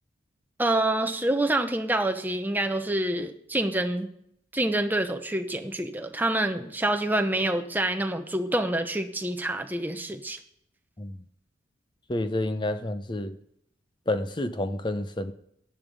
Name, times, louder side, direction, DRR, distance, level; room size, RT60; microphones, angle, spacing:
voice 1, 0.6-4.1 4.5-10.4, right 1 dB, 10° right, 0.8 m, -27 dB
voice 2, 12.1-13.4 14.1-15.3, left 1 dB, 25° left, 0.7 m, -29 dB
11.0 x 10.5 x 5.3 m
head